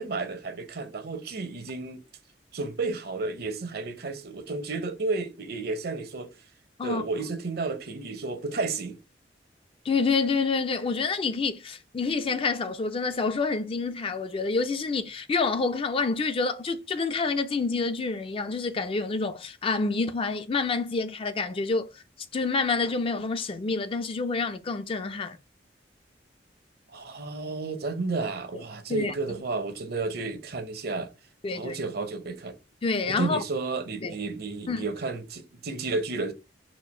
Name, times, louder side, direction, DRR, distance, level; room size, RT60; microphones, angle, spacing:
voice 1, 0.0-2.0 2.5-6.3 6.8-9.0 26.9-31.1 31.5-32.5 33.0-36.3, right 3 dB, 60° right, 0.7 m, -32 dB
voice 2, 9.9-21.9 22.3-25.4 28.9-29.4 31.4-31.8 32.8-33.4 34.0-34.2 34.7-34.9, left 4 dB, 30° left, 0.4 m, -28 dB
4.3 x 2.4 x 4.3 m
head